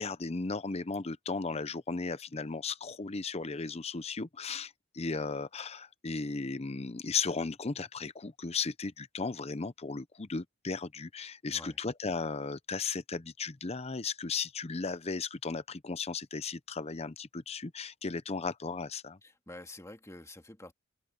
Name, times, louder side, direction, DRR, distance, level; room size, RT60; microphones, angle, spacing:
voice 1, 0.0-19.2, left 4 dB, 30° left, 0.7 m, -36 dB
voice 2, 11.5-11.8 19.2-20.7, left 2 dB, 15° left, 2.1 m, -48 dB
open air
head